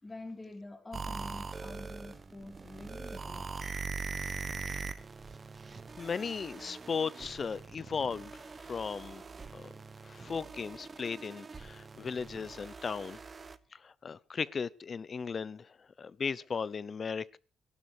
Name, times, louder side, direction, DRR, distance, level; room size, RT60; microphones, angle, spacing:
voice 1, 0.0-3.9 5.8-5.9, left 2 dB, 20° left, 4.3 m, -47 dB
sound 1, 0.9-13.6, right 4 dB, 35° right, 1.1 m, -42 dB
voice 2, 6.0-9.2 9.5-9.7 10.0-13.2 13.8-15.7 16.0-17.4, left 5 dB, 40° left, 0.8 m, -36 dB
18.0 x 12.0 x 4.9 m
cardioid pair, 90°, 0 cm